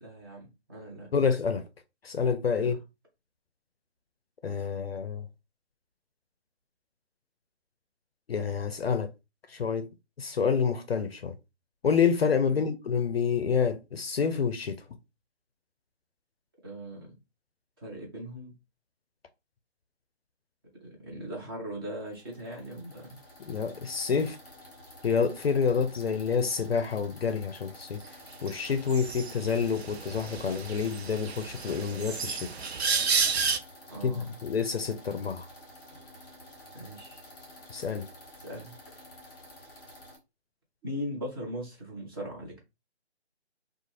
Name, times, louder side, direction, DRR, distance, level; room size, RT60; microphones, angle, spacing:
voice 1, 0.0-1.1 2.6-2.8 12.5-12.7 16.6-17.1 17.8-18.6 20.8-23.2 33.9-34.3 36.7-37.2 38.4-39.0 40.8-42.6, equal, 20° right, 0.7 m, -39 dB
voice 2, 1.1-1.7 2.0-2.8 4.4-5.3 8.3-9.1 9.5-9.9 10.2-11.3 11.8-14.8 23.5-24.4 25.0-28.0 28.4-32.5 34.0-35.5 37.7-38.1, left 6 dB, 60° left, 0.5 m, -28 dB
sound 1, 22.0-40.2, left 1 dB, 15° left, 1.2 m, -50 dB
sound 2, 28.5-28.6 28.9-33.6, right 5 dB, 70° right, 0.5 m, -31 dB
2.5 x 2.3 x 2.9 m
figure-of-eight pair, 150°, 34 cm